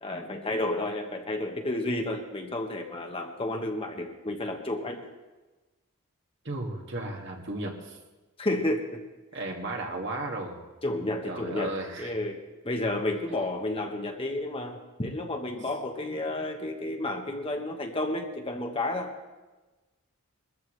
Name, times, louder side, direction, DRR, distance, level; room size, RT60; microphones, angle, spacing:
voice 1, 0.0-5.1 8.4-9.0 10.8-12.4 12.6-19.1, left 1 dB, 25° left, 3 dB, 1.2 m, -31 dB
voice 2, 6.4-8.0 9.3-10.6 11.2-12.1, right 2 dB, 50° right, 1 dB, 2.1 m, -34 dB
22.5 x 14.0 x 3.3 m, 1.2 s
head